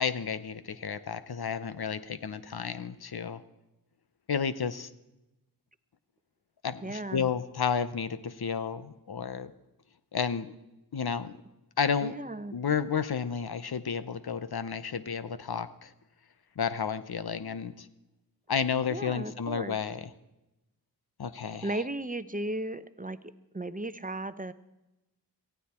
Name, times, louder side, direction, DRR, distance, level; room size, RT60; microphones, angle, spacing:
voice 1, 0.0-3.4 4.3-4.9 6.6-9.5 10.1-10.5 10.9-11.4 11.8-12.1 12.5-15.9 16.6-17.9 18.5-20.1 21.2-21.7, left 6 dB, 75° left, 13 dB, 0.8 m, -31 dB
voice 2, 6.8-7.3 12.0-12.5 18.9-19.8 21.6-23.2 23.5-24.5, right 1 dB, 20° right, 13 dB, 0.7 m, -35 dB
18.0 x 15.0 x 4.4 m, 0.95 s
wide cardioid pair, 60°, 38 cm